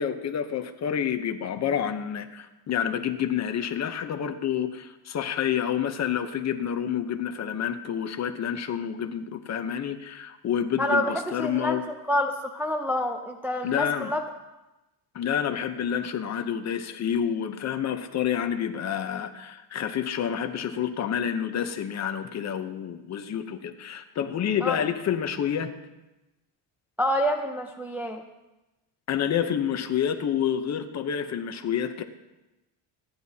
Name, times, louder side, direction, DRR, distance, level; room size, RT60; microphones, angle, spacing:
voice 1, 0.0-11.8 13.6-14.1 15.1-25.7 29.1-32.0, left 8 dB, 35° left, 8 dB, 0.8 m, -28 dB
voice 2, 10.8-11.1 11.4-11.8 12.1-14.2 24.6-24.8 27.0-28.2, left 1 dB, 5° right, 2 dB, 0.4 m, -27 dB
27.5 x 10.5 x 2.8 m, 1.0 s
cardioid pair, 175°, 45 cm